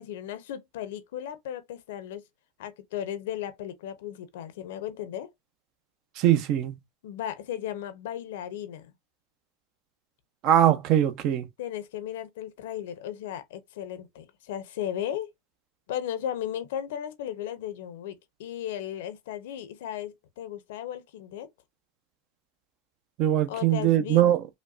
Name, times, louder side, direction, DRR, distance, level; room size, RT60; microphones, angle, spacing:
voice 1, 0.0-2.2 2.6-5.3 7.0-8.9 11.6-15.3 15.9-21.5 23.5-24.2, left 10 dB, 75° left, 0.7 m, -35 dB
voice 2, 6.2-6.8 10.4-11.5 23.2-24.4, right 11 dB, 50° right, 0.7 m, -22 dB
5.1 x 2.2 x 2.5 m
supercardioid pair, 130°, 0 cm